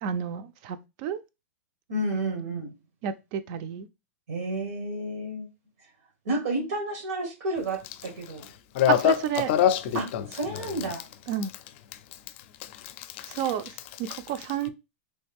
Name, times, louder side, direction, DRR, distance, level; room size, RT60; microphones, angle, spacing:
voice 1, 0.0-1.2 3.0-3.9 9.0-9.5 11.3-11.5 13.3-14.7, right 9 dB, 45° right, 0.4 m, -31 dB
voice 2, 1.9-2.7 4.3-5.5 6.2-8.5 9.9-11.0, right 2 dB, 85° right, 1.2 m, -31 dB
voice 3, 8.7-10.3 10.5-10.9 13.0-13.5 14.1-14.2, left 10 dB, 55° left, 0.5 m, -25 dB
3.1 x 2.4 x 3.4 m
hypercardioid pair, 140°, 8 cm